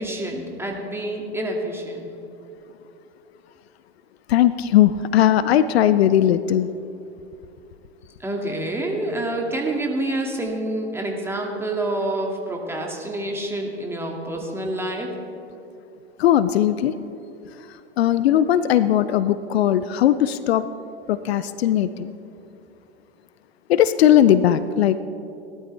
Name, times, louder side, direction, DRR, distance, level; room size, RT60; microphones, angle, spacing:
voice 1, 0.0-2.1 8.2-15.1, right 1 dB, 5° right, 0 dB, 2.0 m, -27 dB
voice 2, 4.3-6.7 16.2-16.9 18.0-20.6 21.1-22.1 23.7-25.0, left 11 dB, 65° left, 14 dB, 0.6 m, -18 dB
18.0 x 12.5 x 3.3 m, 2.7 s
hypercardioid pair, 95°, 33 cm